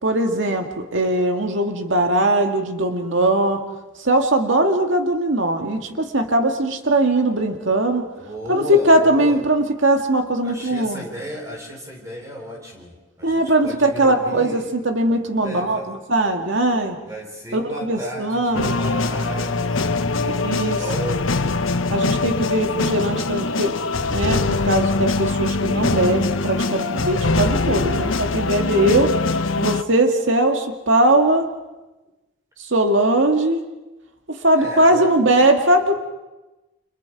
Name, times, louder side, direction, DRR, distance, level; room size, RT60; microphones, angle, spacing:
voice 1, 0.0-3.6 4.0-8.0 8.5-11.0 13.2-17.0 17.5-18.8 20.3-20.8 21.9-23.8 24.1-29.1 29.6-31.5 32.6-33.6 34.3-36.0, right 1 dB, 75° right, 4 dB, 2.0 m, -20 dB
voice 2, 8.1-9.4 10.4-14.7 15.4-15.9 17.0-21.5 34.5-35.1, equal, 15° right, 0 dB, 4.5 m, -34 dB
sound 1, 18.5-29.8, left 3 dB, 90° left, 1.0 m, -22 dB
30.0 x 26.0 x 4.8 m, 1.1 s
head